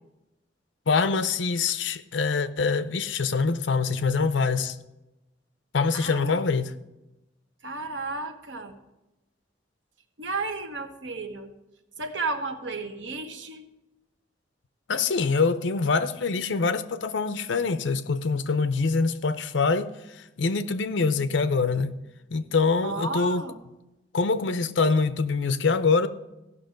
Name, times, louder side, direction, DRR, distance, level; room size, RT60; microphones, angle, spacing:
voice 1, 0.9-4.8 5.7-6.7 14.9-22.0 22.3-23.4 24.1-26.1, left 4 dB, 80° left, 0.6 m, -24 dB
voice 2, 5.9-6.4 7.6-8.7 10.2-11.5 12.0-13.6 22.8-23.6, right 3 dB, 85° right, 1.2 m, -33 dB
15.0 x 6.1 x 5.2 m
head